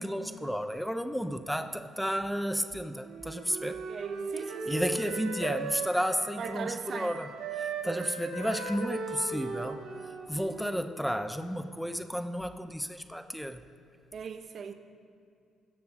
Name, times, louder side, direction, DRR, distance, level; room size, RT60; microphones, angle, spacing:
voice 1, 0.0-3.8 4.7-9.8 10.3-13.6, equal, ahead, 9 dB, 0.5 m, -32 dB
Wind instrument woodwind instrument, 3.0-6.7 6.9-10.9, right 4 dB, 90° right, 1.4 m, -38 dB
voice 2, 3.9-4.8 6.4-7.1 7.8-8.1 14.1-14.7, right 6 dB, 55° right, 8 dB, 0.8 m, -39 dB
15.5 x 7.6 x 6.2 m, 2.4 s
cardioid pair, 90°, 0 cm